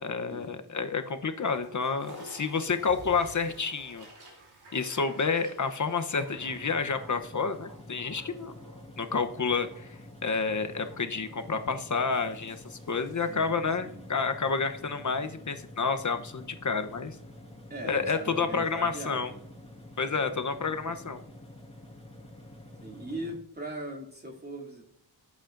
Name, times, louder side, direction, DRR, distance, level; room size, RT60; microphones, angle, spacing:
voice 1, 0.0-4.1 4.7-8.6 9.0-9.9 10.2-17.2 17.8-19.3 20.0-21.2, left 5 dB, 45° left, 7 dB, 0.9 m, -29 dB
Toilet flush, 1.4-13.3, right 1 dB, 65° right, 3.2 m, -52 dB
sound 1, 6.3-23.4, left 1 dB, 15° left, 1.6 m, -48 dB
voice 2, 13.3-14.1 17.7-19.4 20.9-21.1 22.8-24.9, right 1 dB, 25° right, 0 dB, 2.7 m, -40 dB
16.0 x 8.4 x 2.6 m, 0.74 s
wide cardioid pair, 100°, 41 cm